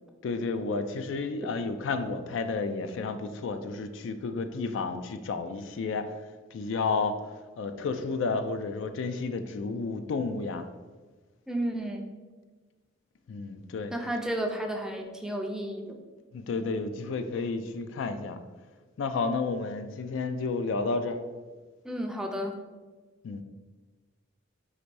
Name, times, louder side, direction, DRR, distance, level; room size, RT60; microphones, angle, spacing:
voice 1, 0.2-6.1 6.5-7.2 7.6-10.7 13.3-13.9 16.3-18.4 19.0-21.2 23.2-23.4, left 4 dB, 70° left, 8 dB, 0.3 m, -31 dB
voice 2, 11.5-12.1 13.9-16.0 21.8-22.6, right 1 dB, 5° right, 2 dB, 0.4 m, -32 dB
4.0 x 2.5 x 4.6 m, 1.3 s
head